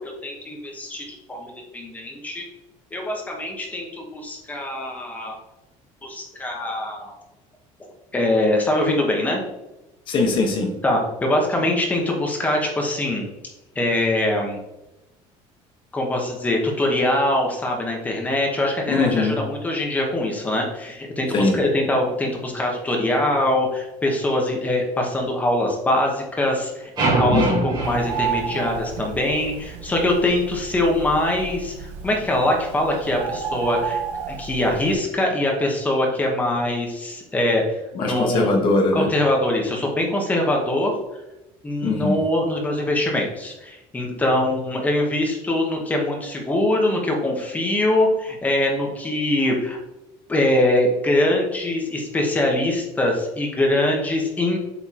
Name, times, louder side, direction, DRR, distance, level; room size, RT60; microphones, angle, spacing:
voice 1, 0.0-2.5 2.9-5.4 6.0-7.1 8.1-9.4 10.8-13.3 13.7-14.6 15.9-37.6 38.0-38.5 38.9-40.9 41.6-49.8 50.3-54.6, left 1 dB, 10° left, 0 dB, 1.1 m, -23 dB
voice 2, 10.1-10.7 18.9-19.4 21.3-21.6 27.3-27.7 37.9-39.1 41.8-42.2, left 3 dB, 35° left, 2 dB, 1.3 m, -21 dB
sound 1, 27.0-29.2, right 3 dB, 30° right, 1.7 m, -24 dB
Bird, 27.8-34.9, right 7 dB, 70° right, 1.0 m, -32 dB
8.1 x 5.2 x 2.9 m, 0.97 s
cardioid pair, 175°, 14 cm